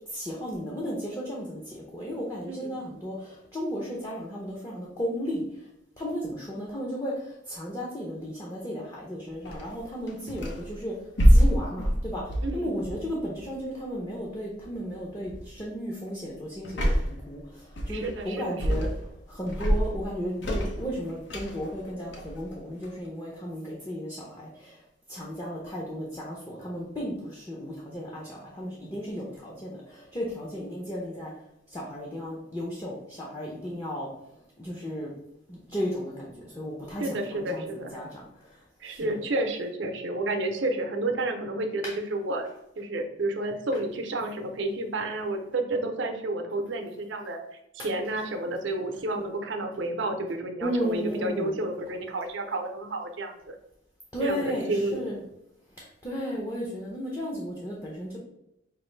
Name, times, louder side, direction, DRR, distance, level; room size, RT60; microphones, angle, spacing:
voice 1, 0.1-5.4 6.0-10.9 11.3-18.9 19.3-24.8 25.1-31.3 31.7-34.1 34.6-35.1 35.5-38.2 38.8-39.2 41.8-41.9 50.6-51.6 54.1-55.2 55.8-58.2, equal, 20° left, -4 dB, 0.6 m, -34 dB
voice 2, 2.5-2.8 12.4-12.7 17.9-18.9 37.0-37.9 38.8-42.5 42.8-47.4 47.8-53.6 54.2-55.1, right 2 dB, 70° right, 4 dB, 0.6 m, -31 dB
sound 1, 9.4-10.7 11.2-13.6 14.6-14.9 15.3-15.6 16.6-17.3 17.8-18.3 18.6-19.2 19.5-23.1, equal, 65° left, 0.7 m, -25 dB
5.2 x 2.6 x 3.2 m, 0.83 s
head